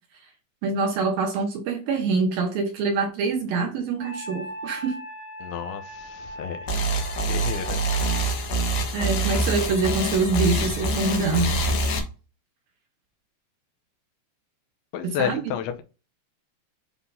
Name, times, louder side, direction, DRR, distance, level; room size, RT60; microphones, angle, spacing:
voice 1, 0.6-5.0 8.9-11.5 15.0-15.5, right 4 dB, 70° right, 2.5 m, -25 dB
Wind instrument woodwind instrument, 4.0-8.3, right 1 dB, 45° right, 1.1 m, -38 dB
voice 2, 5.4-6.8 7.3-7.8 14.9-15.8, left 9 dB, 75° left, 2.5 m, -31 dB
sound 1, 6.7-12.0, right 1 dB, 60° left, 1.9 m, -25 dB
10.0 x 3.7 x 2.7 m
omnidirectional pair, 4.9 m